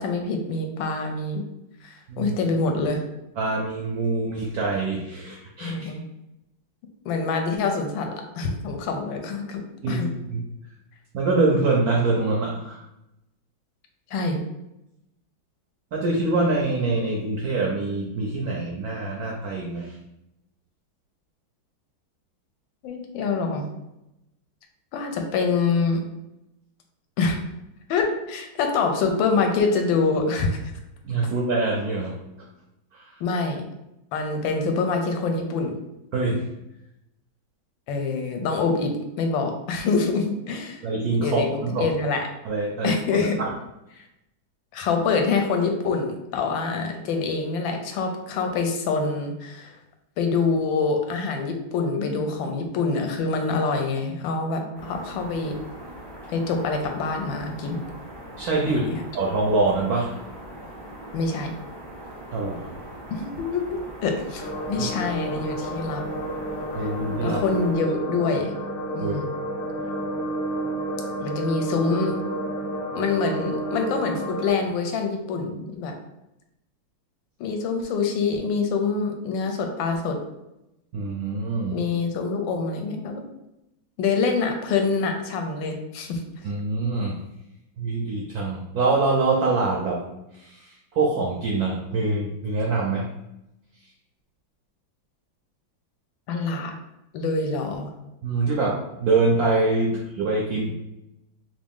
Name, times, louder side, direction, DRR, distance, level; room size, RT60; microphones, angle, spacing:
voice 1, 0.0-1.4 1.8-3.0 5.6-6.0 7.0-10.1 14.1-14.4 22.8-23.6 24.9-26.0 27.2-27.4 27.9-30.7 33.2-33.6 34.1-35.7 37.9-40.8 41.2-42.3 42.8-43.4 44.0-44.1 44.7-49.8 50.2-55.5 56.3-57.8 58.6-58.9 61.1-61.5 63.1-66.0 66.8-66.9 67.2-68.5 68.9-69.3 71.2-72.2 72.9-75.9 77.4-80.2 81.7-83.2 84.0-86.2 96.3-96.7 97.1-97.9, left 4 dB, 75° left, 4 dB, 1.3 m, -25 dB
voice 2, 3.4-6.0 9.8-10.4 11.1-12.8 15.9-20.0 31.0-32.5 32.9-33.2 36.1-36.5 40.8-41.9 42.4-43.0 43.4-43.5 58.4-58.8 59.1-60.2 62.3-62.7 64.8-64.9 66.7-67.4 69.0-69.2 80.9-81.8 86.4-87.2 87.8-90.0 90.3-93.1 98.2-100.7, right 3 dB, 80° right, -2 dB, 0.8 m, -25 dB
sound 1, 54.7-67.8, right 1 dB, 5° left, 0.3 m, -41 dB
sound 2, 64.4-74.5, right 1 dB, 40° left, 0.9 m, -30 dB
3.2 x 2.6 x 3.5 m, 0.89 s
omnidirectional pair, 2.2 m